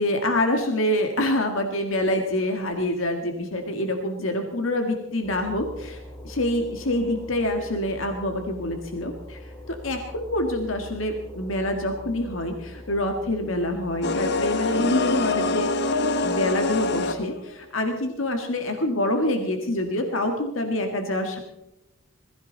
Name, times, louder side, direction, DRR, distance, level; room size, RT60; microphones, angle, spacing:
voice 1, 0.0-15.7 16.2-21.4, left 1 dB, 85° left, 5 dB, 1.8 m, -26 dB
sound 1, 5.2-17.3, equal, 10° left, 3.4 m, -43 dB
sound 2, 14.0-17.5, left 3 dB, 55° left, 1.0 m, -24 dB
21.5 x 15.0 x 4.0 m, 0.92 s
head